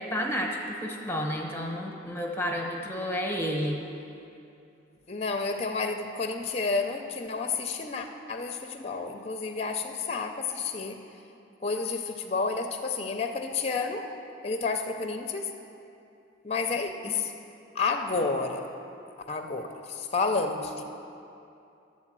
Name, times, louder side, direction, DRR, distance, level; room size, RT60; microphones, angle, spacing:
voice 1, 0.0-3.8 17.0-17.1, equal, 10° left, 1 dB, 0.9 m, -31 dB
voice 2, 5.1-11.0 11.6-14.1 14.4-15.5 16.4-17.3 17.7-18.7 19.3-20.8, left 4 dB, 30° left, 5 dB, 0.5 m, -30 dB
11.5 x 4.3 x 7.4 m, 2.7 s
head